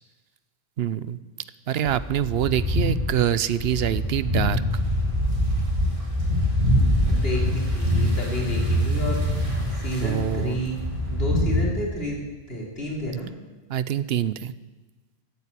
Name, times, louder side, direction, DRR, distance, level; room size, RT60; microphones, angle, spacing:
voice 1, 0.8-1.2 1.7-4.6 10.0-10.6 13.7-14.5, right 10 dB, 70° right, 16 dB, 0.9 m, -25 dB
sound 1, 1.9-11.6, left 1 dB, 30° right, 4.9 m, -24 dB
voice 2, 7.1-9.2 9.8-10.7 11.1-12.2 12.5-13.3, equal, 65° left, -2 dB, 3.9 m, -30 dB
15.0 x 9.1 x 8.4 m, 1.2 s
omnidirectional pair, 1.1 m